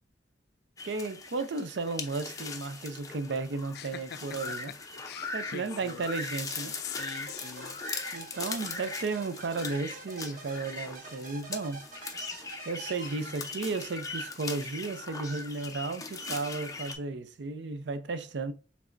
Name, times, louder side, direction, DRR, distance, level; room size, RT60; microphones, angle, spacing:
sound 1, 0.8-17.0, left 4 dB, 20° left, 0.6 m, -40 dB
voice 1, 0.8-4.7 5.3-6.7 8.1-11.8 12.7-18.5, right 3 dB, 80° right, 0.5 m, -34 dB
voice 2, 3.7-4.2 4.6-6.1 6.8-7.8, left 8 dB, 60° left, 0.4 m, -43 dB
sound 2, 7.0-13.8, right 4 dB, 50° right, 0.9 m, -47 dB
5.0 x 3.4 x 2.5 m
head